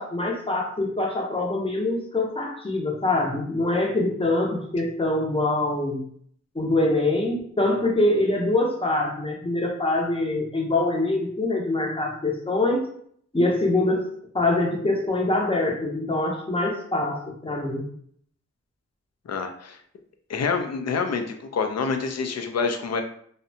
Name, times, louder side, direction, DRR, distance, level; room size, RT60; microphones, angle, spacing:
voice 1, 0.0-6.1 6.5-12.8 13.3-14.1 14.3-17.8, left 2 dB, 20° left, -1 dB, 0.6 m, -24 dB
voice 2, 19.3-19.8 20.3-21.2 21.5-23.0, left 5 dB, 60° left, 6 dB, 0.4 m, -26 dB
2.6 x 2.1 x 2.6 m, 0.62 s
wide cardioid pair, 80°, 29 cm